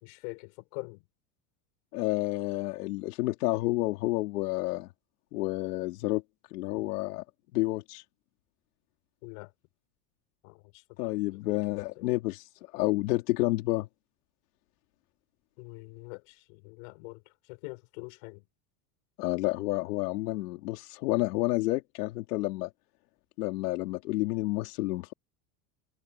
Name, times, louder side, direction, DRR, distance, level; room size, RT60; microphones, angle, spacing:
voice 1, 0.0-1.0 6.7-6.8 9.2-9.5 10.4-10.8 11.3-11.4 12.0-12.1 15.6-17.2 17.5-18.4, left 32 dB, 65° left, 4.9 m, -44 dB
voice 2, 1.9-4.9 5.3-6.2 6.5-7.2 7.5-8.0 11.0-13.9 19.2-22.7 23.4-25.1, left 20 dB, 85° left, 3.9 m, -30 dB
supercardioid pair, 155°, 45 cm